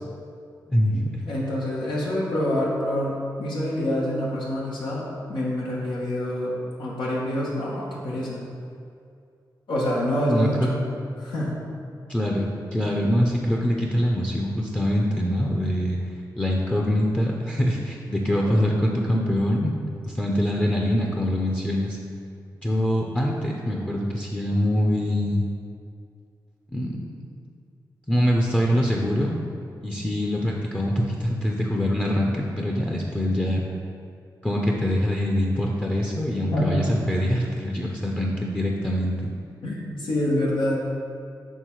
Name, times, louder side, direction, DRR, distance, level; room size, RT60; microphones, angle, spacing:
voice 1, 0.9-8.4 9.7-10.8 11.2-11.6 12.8-12.9 18.4-18.6 36.5-36.8 39.6-40.9, left 1 dB, 85° left, -5 dB, 1.2 m, -27 dB
voice 2, 10.3-10.7 12.1-16.0 16.4-19.7 20.1-22.0 22.6-25.4 26.7-27.2 28.1-29.4 29.8-33.6 34.4-39.3, equal, 15° left, -1 dB, 0.6 m, -24 dB
6.5 x 3.6 x 4.6 m, 2.4 s
cardioid pair, 70°, 8 cm